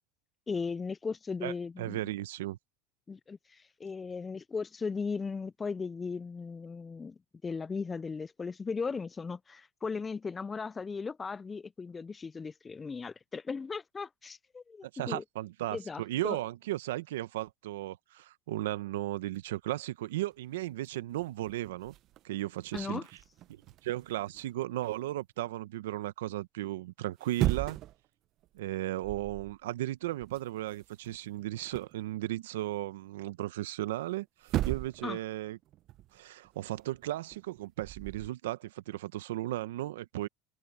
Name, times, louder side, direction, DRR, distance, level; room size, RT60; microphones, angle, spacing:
voice 1, 0.5-2.0 3.1-15.2 15.7-16.4 22.7-23.1 35.0-35.2, left 5 dB, 20° left, 0.3 m, -37 dB
voice 2, 1.4-2.6 14.9-21.9 22.2-23.0 23.5-27.8 28.5-35.6 36.1-40.3, right 15 dB, 80° right, 0.8 m, -35 dB
sound 1, 19.3-19.7 20.3-20.4 20.7-25.0 27.1-28.1 28.4-28.7 29.0-29.6 29.8-32.0 34.0-34.1 34.4-35.2 35.4-38.3, right 14 dB, 50° right, 0.7 m, -38 dB
hypercardioid pair, 90°, 0 cm